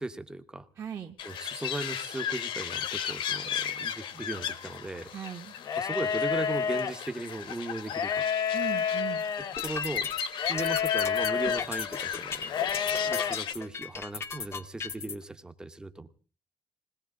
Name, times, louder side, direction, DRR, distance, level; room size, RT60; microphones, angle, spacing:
voice 1, 0.0-0.7 1.2-5.1 5.8-8.3 9.6-10.1 10.5-16.1, right 2 dB, 10° right, 10 dB, 0.8 m, -37 dB
voice 2, 0.8-1.2 5.1-5.5 8.5-9.2, right 9 dB, 35° right, 1 dB, 1.0 m, -38 dB
sound 1, 1.2-13.5, left 8 dB, 65° left, 1.4 m, -36 dB
sound 2, 5.6-6.9 7.8-9.5 10.4-11.6 12.5-13.4, left 7 dB, 45° left, 1.1 m, -29 dB
sound 3, 9.4-15.2, left 5 dB, 30° left, 0.8 m, -37 dB
21.0 x 18.5 x 3.7 m, 0.37 s
cardioid pair, 175°, 9 cm